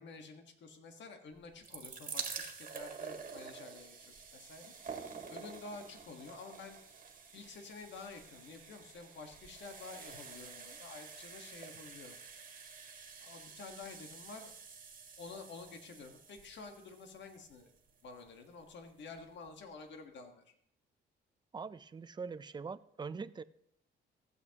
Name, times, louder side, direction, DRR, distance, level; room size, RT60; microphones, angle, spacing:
voice 1, 0.0-4.7 5.3-6.8 7.3-12.2 13.2-14.5 15.2-17.7 18.0-20.5, left 4 dB, 65° left, 5 dB, 1.5 m, -50 dB
sound 1, 1.4-18.4 19.2-19.3 19.5-19.6, right 5 dB, 40° right, 1.7 m, -48 dB
voice 2, 21.5-23.4, right 5 dB, 20° right, 14 dB, 0.5 m, -43 dB
15.5 x 8.1 x 2.9 m, 0.71 s
cardioid pair, 90°, 20 cm